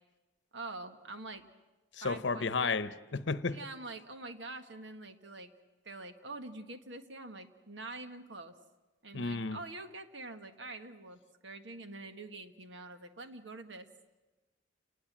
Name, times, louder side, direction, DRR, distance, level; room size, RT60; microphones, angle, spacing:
voice 1, 0.5-1.5 2.0-2.8 3.4-5.5 5.8-8.5 9.0-13.9, right 2 dB, 65° right, 1.6 m, -45 dB
voice 2, 2.0-3.6 9.1-9.6, left 4 dB, 65° left, 0.9 m, -32 dB
29.0 x 19.5 x 7.5 m
head